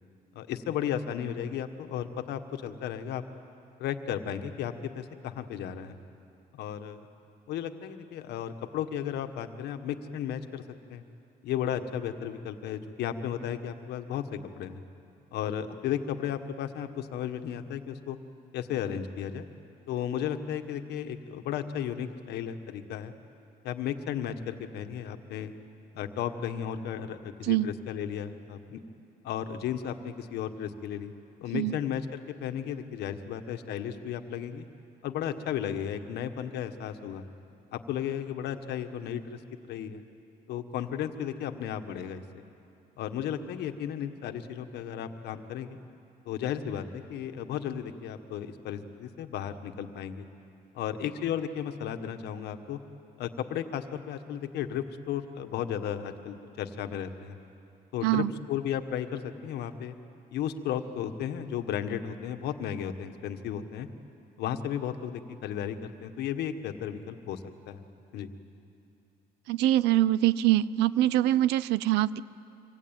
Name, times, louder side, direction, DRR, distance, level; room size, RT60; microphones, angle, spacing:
voice 1, 0.3-3.2 3.8-6.0 6.5-7.1 7.5-10.6 10.9-11.0 11.4-14.2 14.6-14.8 15.3-18.2 18.5-19.5 19.9-23.1 23.6-25.5 25.9-28.8 29.2-31.1 31.4-34.6 35.0-37.2 37.7-39.4 39.7-40.0 40.5-42.4 43.0-45.8 46.3-50.3 50.7-52.8 53.2-57.4 57.9-59.9 60.3-63.9 64.4-67.8 68.1-68.3, left 9 dB, 75° left, 7 dB, 1.6 m, -34 dB
voice 2, 69.5-72.2, right 14 dB, 90° right, 18 dB, 0.7 m, -24 dB
26.0 x 25.0 x 9.1 m, 2.7 s
cardioid pair, 110°, 17 cm